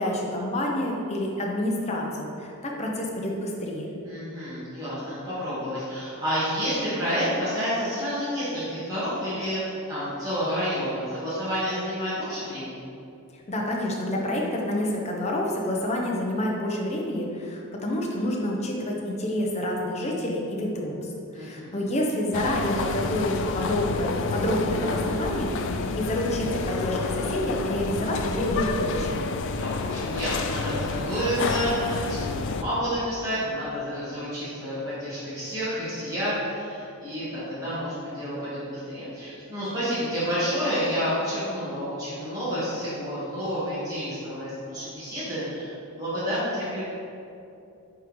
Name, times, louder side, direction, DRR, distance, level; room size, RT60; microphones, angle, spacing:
voice 1, 0.0-3.9 13.5-29.2, left 1 dB, 30° left, -1 dB, 0.7 m, -28 dB
voice 2, 4.0-12.9 21.3-21.7 29.5-46.8, equal, 15° right, -12 dB, 1.5 m, -29 dB
sound 1, 22.3-32.6, left 4 dB, 55° left, 0.3 m, -29 dB
8.8 x 3.6 x 3.1 m, 2.7 s
head